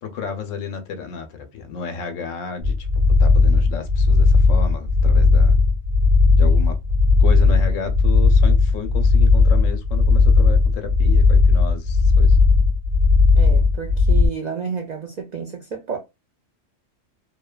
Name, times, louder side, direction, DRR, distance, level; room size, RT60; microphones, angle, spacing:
voice 1, 0.0-5.6 6.4-6.8 7.2-12.4, left 6 dB, 90° left, 1.0 m, -32 dB
sound 1, 2.6-14.3, left 4 dB, 45° right, 0.7 m, -16 dB
voice 2, 13.3-16.0, right 6 dB, 85° right, 0.3 m, -30 dB
2.7 x 2.1 x 2.3 m
omnidirectional pair, 1.3 m